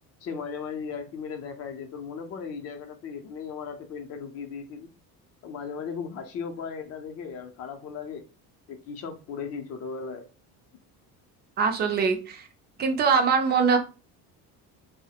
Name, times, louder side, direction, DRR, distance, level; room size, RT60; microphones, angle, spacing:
voice 1, 0.2-4.9 5.4-8.2 8.7-10.3, left 6 dB, 40° left, 0.5 m, -37 dB
voice 2, 11.6-12.5 12.8-13.8, right 5 dB, 25° right, 0.4 m, -22 dB
3.1 x 2.1 x 2.7 m
cardioid pair, 160°, 38 cm